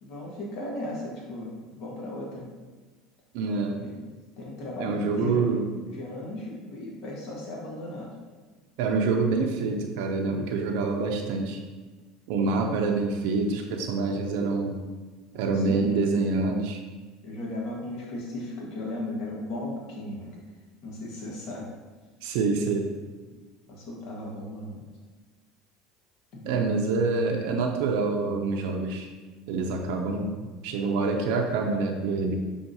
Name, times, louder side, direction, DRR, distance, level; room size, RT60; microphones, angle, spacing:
voice 1, 0.0-2.5 3.7-8.1 15.5-15.8 17.2-20.4 20.8-21.7 23.7-24.8 26.3-26.5, left 1 dB, 65° left, -2 dB, 1.4 m, -36 dB
voice 2, 3.3-3.8 4.8-5.9 8.8-11.6 12.3-14.8 15.3-16.8 22.2-22.9 26.4-29.1 29.5-30.4 30.6-32.3, right 4 dB, 70° right, 2 dB, 0.5 m, -26 dB
5.7 x 3.5 x 2.7 m, 1.4 s
supercardioid pair, 95°, 0 cm